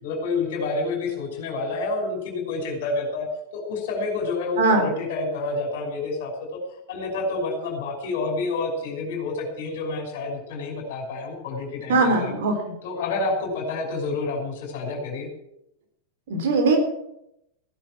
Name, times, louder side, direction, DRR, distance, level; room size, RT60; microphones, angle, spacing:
voice 1, 0.0-6.6 6.9-12.4 12.8-15.3, left 3 dB, 55° left, 2 dB, 5.7 m, -29 dB
voice 2, 4.6-4.9 11.9-12.6 16.3-16.8, right 3 dB, 55° right, 4 dB, 3.8 m, -20 dB
16.5 x 10.5 x 7.4 m, 0.81 s
figure-of-eight pair, 90°, 0 cm